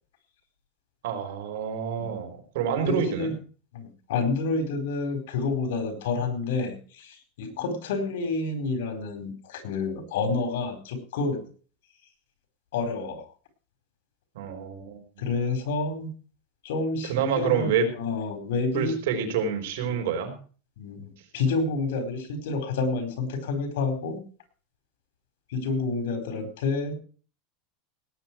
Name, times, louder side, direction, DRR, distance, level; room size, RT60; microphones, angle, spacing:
voice 1, 1.0-3.3 14.3-15.3 17.1-17.9 18.7-20.3, right 7 dB, 75° right, 5 dB, 4.9 m, -28 dB
voice 2, 2.8-3.3 3.7-11.4 12.7-13.3 15.2-16.1 16.6-19.0 20.8-24.2 25.5-26.9, left 3 dB, 80° left, 8 dB, 4.5 m, -29 dB
18.0 x 9.7 x 4.6 m, 0.40 s
supercardioid pair, 170°, 0 cm